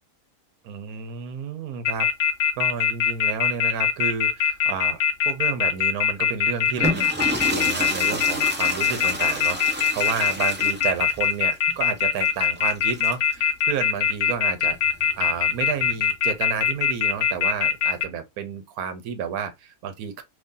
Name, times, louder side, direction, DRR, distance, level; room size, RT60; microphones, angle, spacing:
voice 1, 0.6-2.1 2.6-7.0 7.5-14.8 15.2-20.2, right 7 dB, 80° right, 1.2 m, -31 dB
sound 1, 1.8-18.0, left 8 dB, 65° left, 0.5 m, -21 dB
sound 2, 6.7-13.3 14.7-16.1, equal, 15° right, 0.3 m, -31 dB
2.9 x 2.6 x 3.7 m
omnidirectional pair, 1.6 m